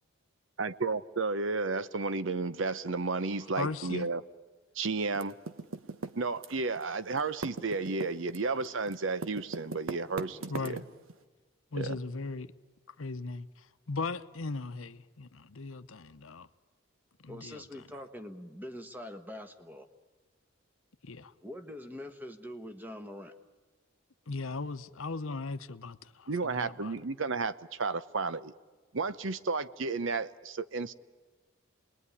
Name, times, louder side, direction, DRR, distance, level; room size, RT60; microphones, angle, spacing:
voice 1, 0.6-4.2 4.7-5.4 6.2-10.8 11.7-11.9 26.3-28.5 28.9-30.9, right 3 dB, 65° right, 0.8 m, -32 dB
voice 2, 3.6-4.1 10.5-10.8 11.7-12.5 13.0-13.5 13.9-16.5 17.2-17.8 21.0-21.3 24.3-27.0, left 3 dB, 80° left, 0.9 m, -38 dB
Typing, 5.1-6.8 7.1-11.1, right 3 dB, 85° right, 1.2 m, -39 dB
voice 3, 17.3-19.9 21.4-23.3, left 1 dB, 10° right, 1.4 m, -44 dB
28.0 x 21.0 x 9.9 m
head